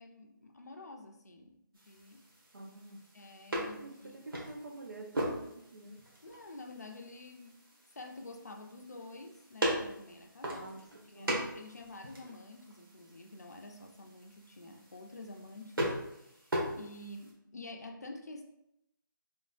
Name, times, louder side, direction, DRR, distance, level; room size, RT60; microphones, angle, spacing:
voice 1, 0.0-2.2 3.1-4.2 6.2-7.6 7.9-10.7 11.1-18.4, left 2 dB, 50° left, 3 dB, 0.5 m, -49 dB
sound 1, 1.7-17.3, right 1 dB, 75° right, 1.5 m, -40 dB
voice 2, 2.5-3.0 3.7-6.0 10.5-10.8 11.1-11.4, right 2 dB, 50° right, 4 dB, 0.6 m, -48 dB
4.2 x 3.2 x 2.5 m, 0.80 s
figure-of-eight pair, 175°, 12 cm